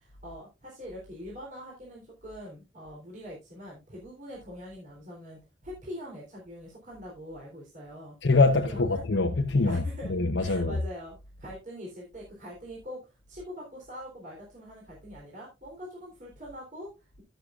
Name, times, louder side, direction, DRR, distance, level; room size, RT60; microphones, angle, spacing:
voice 1, 0.0-8.2 8.6-9.0 9.7-17.2, equal, 40° right, 3.8 m, -43 dB
voice 2, 8.2-10.8, left 3 dB, 80° left, 1.0 m, -24 dB
16.5 x 6.8 x 2.5 m
head